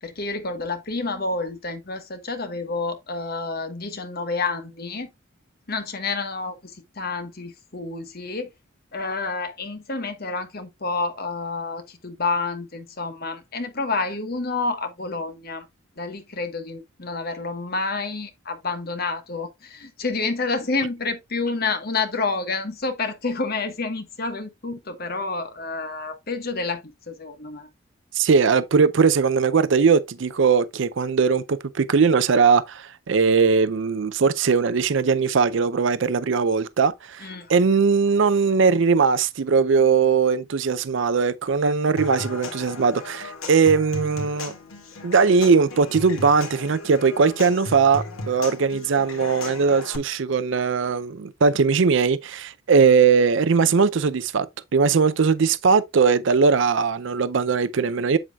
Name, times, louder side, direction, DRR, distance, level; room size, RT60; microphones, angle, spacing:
voice 1, 0.0-5.1 5.7-8.5 8.9-15.7 16.0-27.7 37.2-37.5, left 3 dB, 45° left, 1.3 m, -29 dB
voice 2, 28.1-44.5 45.0-54.5 54.7-58.2, right 5 dB, 65° right, 0.5 m, -20 dB
Human voice / Acoustic guitar / Percussion, 42.0-50.0, left 3 dB, 85° left, 2.1 m, -36 dB
7.8 x 7.6 x 2.3 m
head